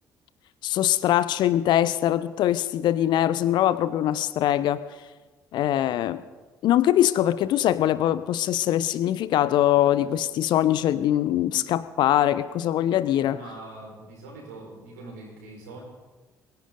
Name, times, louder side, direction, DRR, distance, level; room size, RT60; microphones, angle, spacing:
voice 1, 0.6-4.8 5.5-6.2 6.6-13.4, left 12 dB, 55° left, 16 dB, 0.8 m, -22 dB
voice 2, 13.2-15.8, right 2 dB, 70° right, -1 dB, 4.8 m, -43 dB
23.0 x 16.5 x 3.9 m, 1.3 s
figure-of-eight pair, 45°, 9 cm